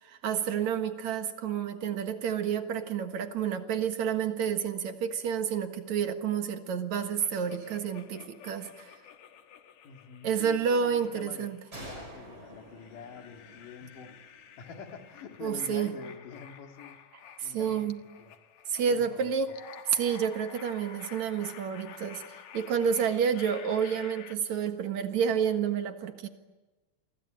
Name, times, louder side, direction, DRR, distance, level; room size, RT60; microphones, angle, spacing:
voice 1, 0.0-8.9 10.2-11.6 15.4-15.9 17.4-18.0 18.7-19.5 19.9-22.2 22.5-26.3, right 7 dB, 65° right, 8 dB, 2.8 m, -29 dB
sound 1, 7.2-11.9 12.4-24.4, left 8 dB, 65° left, 2.6 m, -51 dB
voice 2, 9.8-11.5 11.8-14.1 14.6-17.0 17.4-17.9 18.2-18.3 18.8-19.4, left 7 dB, 85° left, 5 dB, 3.7 m, -46 dB
sound 2, 11.7-15.2, right 1 dB, 35° right, 8.3 m, -48 dB
28.5 x 23.5 x 8.8 m, 1.2 s
omnidirectional pair, 3.7 m